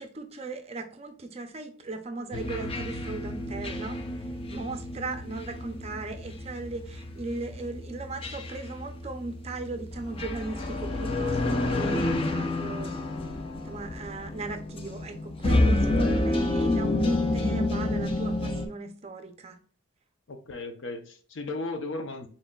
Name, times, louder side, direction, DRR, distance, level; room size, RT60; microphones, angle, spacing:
voice 1, 0.0-13.0 13.6-19.6, right 3 dB, 30° right, 0.5 m, -38 dB
sound 1, 2.3-18.7, left 2 dB, 25° left, 0.4 m, -29 dB
voice 2, 15.6-16.3 20.3-22.3, left 2 dB, 65° left, 0.7 m, -36 dB
4.0 x 3.8 x 2.3 m
head